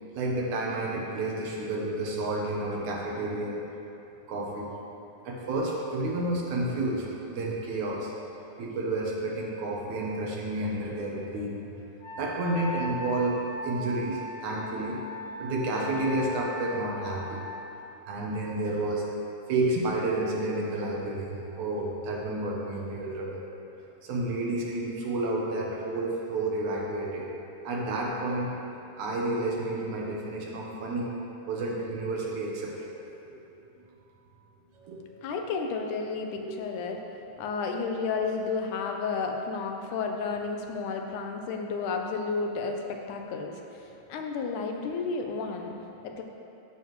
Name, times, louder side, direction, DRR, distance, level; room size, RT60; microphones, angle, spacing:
voice 1, 0.0-3.6 4.3-4.7 5.2-8.2 8.6-11.7 12.2-15.0 15.4-17.4 18.1-19.1 19.5-23.4 24.0-27.3 27.6-28.5 29.0-31.2 31.5-32.9 33.2-33.4 34.7-35.1 36.4-36.5 43.9-44.0, right 2 dB, 75° right, -2 dB, 2.4 m, -30 dB
Wind instrument woodwind instrument, 12.0-17.5, left 2 dB, 65° left, 2.0 m, -38 dB
voice 2, 35.2-37.0 37.4-45.7 46.0-46.2, left 4 dB, 85° left, 3 dB, 2.2 m, -32 dB
13.0 x 7.0 x 3.1 m, 2.8 s
omnidirectional pair, 3.5 m